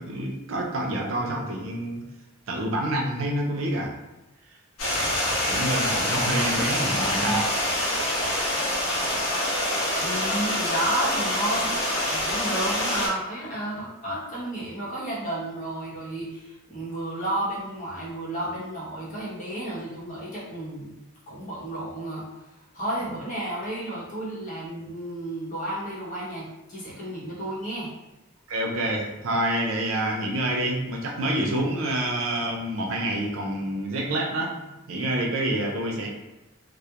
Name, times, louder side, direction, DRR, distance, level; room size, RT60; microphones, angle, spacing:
voice 1, 0.0-2.0 2.5-3.9 5.5-7.5 28.5-36.1, right 1 dB, 70° right, 0 dB, 0.5 m, -27 dB
Stream, 4.8-13.1, left 1 dB, 90° left, 0.7 m, -26 dB
voice 2, 7.0-7.5 10.0-11.7 12.1-20.9 21.3-22.5 22.7-27.9, right 1 dB, 40° left, -7 dB, 0.8 m, -32 dB
2.2 x 2.0 x 2.8 m, 1.0 s
head